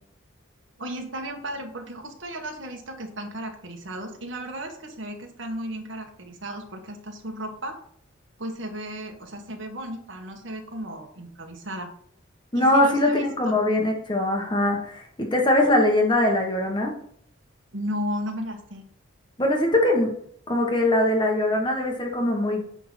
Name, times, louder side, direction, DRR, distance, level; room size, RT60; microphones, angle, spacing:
voice 1, 0.8-7.8 8.4-11.9 12.5-13.6 17.7-18.8, equal, 60° right, 3 dB, 1.6 m, -34 dB
voice 2, 12.5-16.9 19.4-20.1 20.5-22.7, left 1 dB, 20° left, 1 dB, 1.4 m, -22 dB
9.8 x 3.8 x 5.9 m, 0.63 s
head